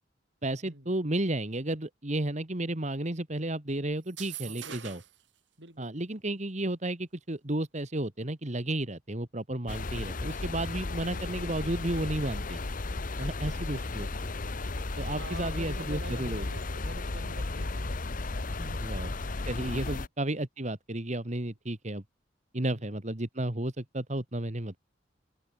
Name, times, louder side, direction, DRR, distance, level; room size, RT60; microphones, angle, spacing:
voice 1, 0.4-5.0 5.8-12.6 13.2-14.1 15.0-16.5 18.8-19.1 19.4-22.0 22.5-24.8, right 1 dB, 40° right, 2.0 m, -33 dB
sound 1, 4.0-5.2, right 11 dB, 90° right, 5.5 m, -42 dB
voice 2, 4.5-4.9 5.6-5.9 11.1-11.3 12.8-13.5 14.5-18.0 18.4-19.0 19.8-20.0 22.6-22.9, right 2 dB, 70° right, 7.8 m, -47 dB
sound 2, 9.7-20.1, left 2 dB, 50° left, 1.0 m, -34 dB
head